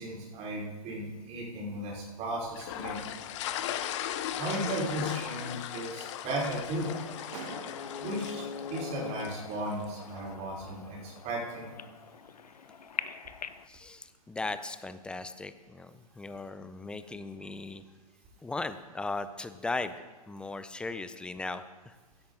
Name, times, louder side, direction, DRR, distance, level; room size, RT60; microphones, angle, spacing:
voice 1, 0.0-3.0 4.4-6.9 8.0-8.4 8.7-11.7, right 1 dB, 35° right, -3 dB, 3.9 m, -35 dB
sound 1, 2.6-9.8, left 11 dB, 50° left, 0.7 m, -38 dB
sound 2, 6.8-13.7, left 6 dB, 90° left, 0.6 m, -42 dB
sound 3, 6.8-8.6 9.8-11.7 12.1-12.4 12.8-13.1, right 5 dB, 65° right, 1.7 m, -50 dB
voice 2, 13.7-17.8 18.4-19.9 20.3-22.0, left 3 dB, 5° left, 12 dB, 0.5 m, -37 dB
16.0 x 8.5 x 3.8 m, 1.3 s
hypercardioid pair, 115°, 20 cm